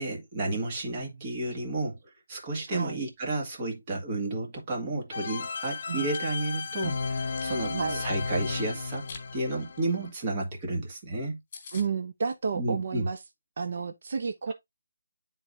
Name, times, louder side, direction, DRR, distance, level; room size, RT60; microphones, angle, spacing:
voice 1, 0.0-2.0 2.3-9.1 9.3-11.4 12.5-13.1 14.5-14.6, right 2 dB, 25° right, 1.9 m, -32 dB
voice 2, 2.7-3.0 5.9-6.1 7.7-8.0 11.7-13.2 13.6-14.5, right 5 dB, 50° right, 0.7 m, -31 dB
sound 1, 5.1-10.1, left 4 dB, 50° left, 1.0 m, -34 dB
Chewing mastication, 6.1-6.2 6.7-8.2 8.8-9.3 9.6-9.8 10.1-10.2 10.5-10.6 11.0-11.1 11.2-11.3 11.5-11.9, left 5 dB, 30° left, 2.0 m, -45 dB
9.7 x 4.0 x 2.6 m
figure-of-eight pair, 165°, 0 cm